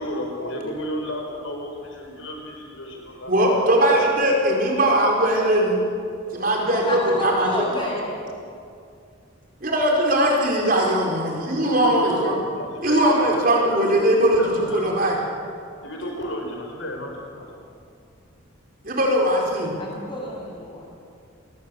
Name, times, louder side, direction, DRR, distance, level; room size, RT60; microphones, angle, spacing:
voice 1, 0.0-3.6 6.4-6.7 11.6-14.0 14.4-15.1 15.8-17.7, left 1 dB, 70° left, 2 dB, 5.4 m, -33 dB
voice 2, 3.3-5.8 6.3-7.9 9.6-12.4 12.8-15.2 18.8-19.7, right 1 dB, 45° right, 0 dB, 4.7 m, -20 dB
voice 3, 6.7-8.1 19.8-20.9, left 1 dB, 25° left, -2 dB, 7.5 m, -30 dB
29.0 x 20.5 x 8.4 m, 2.5 s
head